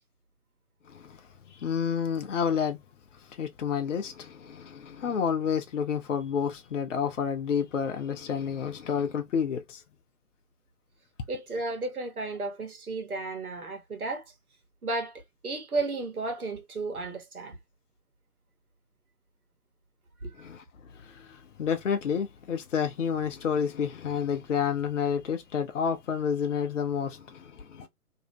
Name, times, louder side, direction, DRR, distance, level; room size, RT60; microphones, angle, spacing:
voice 1, 0.9-1.2 1.5-2.8 3.3-9.8 20.4-20.6 20.9-27.9, left 7 dB, 60° left, 0.5 m, -30 dB
voice 2, 11.3-14.2 14.8-17.6 20.2-20.3, right 3 dB, 75° right, 1.1 m, -33 dB
2.6 x 2.0 x 2.8 m
figure-of-eight pair, 130°, 44 cm